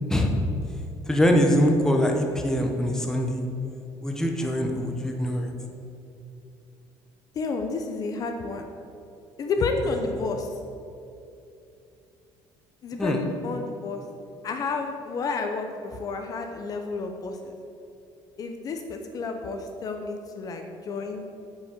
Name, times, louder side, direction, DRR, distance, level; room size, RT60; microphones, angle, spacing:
voice 1, 1.1-3.5 4.0-5.5 13.0-13.2, equal, 5° left, 2 dB, 0.9 m, -23 dB
voice 2, 7.3-8.7 9.4-10.5 12.8-14.0 14.4-17.6 18.4-21.2, left 4 dB, 40° left, 5 dB, 0.7 m, -30 dB
8.6 x 5.2 x 6.9 m, 2.7 s
cardioid pair, 150°, 9 cm